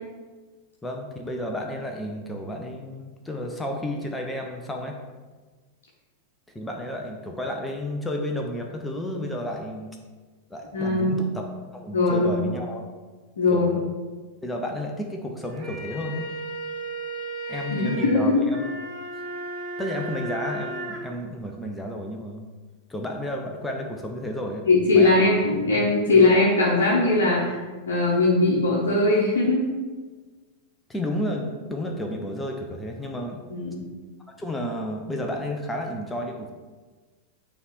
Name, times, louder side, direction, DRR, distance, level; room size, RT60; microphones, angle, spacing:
voice 1, 0.8-5.0 6.5-10.0 10.5-11.5 11.7-12.8 13.5-13.9 14.4-16.3 17.5-18.6 19.8-22.5 22.9-24.7 24.9-25.3 26.1-26.4 30.9-33.4 34.4-36.5, left 1 dB, 10° left, 2 dB, 0.8 m, -32 dB
voice 2, 10.7-11.2 11.9-12.5 13.4-13.7 17.5-18.4 24.7-27.6 27.9-29.7 33.5-33.8, left 2 dB, 65° left, -4 dB, 1.2 m, -20 dB
sound 1, 15.4-21.0, right 2 dB, 35° right, 1.6 m, -35 dB
9.2 x 3.5 x 4.3 m, 1.3 s
figure-of-eight pair, 90°, 0 cm